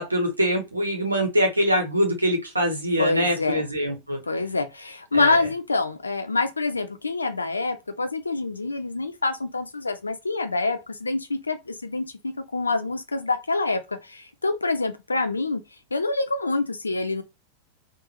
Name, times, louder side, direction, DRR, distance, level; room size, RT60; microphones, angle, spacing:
voice 1, 0.0-4.2 5.1-5.3, equal, 80° right, 1.3 m, -24 dB
voice 2, 3.0-3.7 4.2-15.6 15.9-17.2, left 3 dB, 80° left, 0.6 m, -26 dB
3.9 x 2.5 x 2.9 m
figure-of-eight pair, 90°, 0 cm